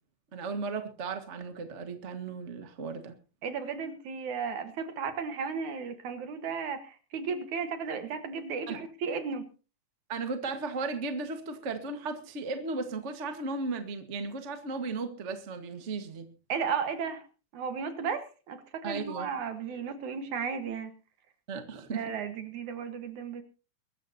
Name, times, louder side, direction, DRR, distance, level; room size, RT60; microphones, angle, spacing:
voice 1, 0.3-3.1 8.7-8.8 10.1-16.3 18.8-19.3 21.5-22.0, right 3 dB, 35° right, 1.3 m, -35 dB
voice 2, 3.4-9.4 16.5-17.2 17.5-20.9 21.9-23.4, right 6 dB, 65° right, 2.8 m, -34 dB
23.5 x 13.5 x 2.9 m
omnidirectional pair, 3.7 m